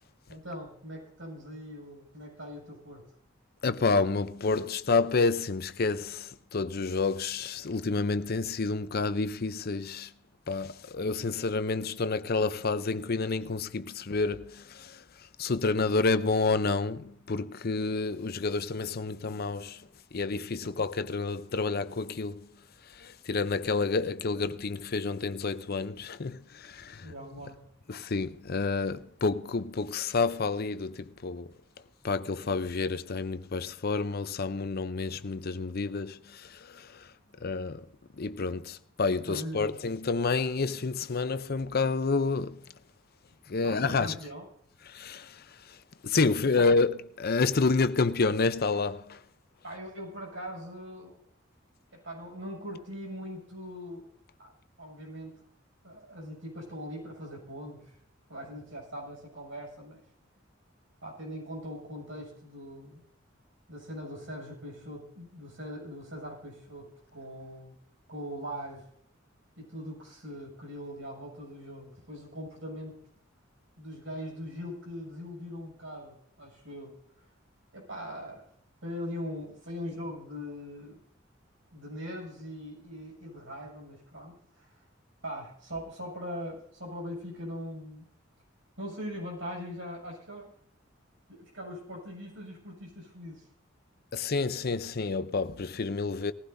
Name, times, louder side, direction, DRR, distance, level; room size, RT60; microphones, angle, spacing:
voice 1, 0.3-3.0 27.0-27.6 39.3-39.8 43.6-44.4 46.5-46.7 49.6-51.2 51.9-54.1 54.4-54.5 54.8-55.4 55.8-57.9 58.3-60.0 61.0-63.0 63.7-67.7 68.1-68.8 69.6-73.0 73.8-76.9 77.7-78.5 78.8-81.0 81.7-84.7 85.2-88.1 88.8-90.5 91.3-93.4, equal, 75° right, 7.2 m, -41 dB
voice 2, 3.6-10.1 10.5-15.0 15.4-22.5 22.9-27.1 27.9-31.5 32.0-37.1 37.4-37.9 38.1-42.6 43.5-44.2 44.9-45.8 46.0-49.2 94.1-96.3, left 4 dB, 50° left, 0.7 m, -29 dB
20.0 x 15.5 x 2.7 m
head